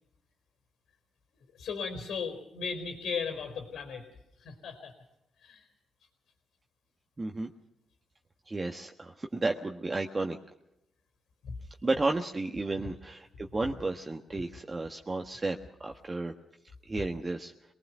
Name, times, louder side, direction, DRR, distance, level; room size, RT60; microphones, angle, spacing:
voice 1, 1.6-4.0 4.4-4.9 5.4-5.7 11.4-11.5, left 5 dB, 80° left, 2 dB, 4.3 m, -36 dB
voice 2, 7.2-7.5 8.5-10.4 11.8-16.3 16.8-17.5, right 2 dB, 30° right, 3 dB, 1.4 m, -32 dB
24.0 x 19.5 x 6.1 m, 0.87 s
cardioid pair, 65°, 0 cm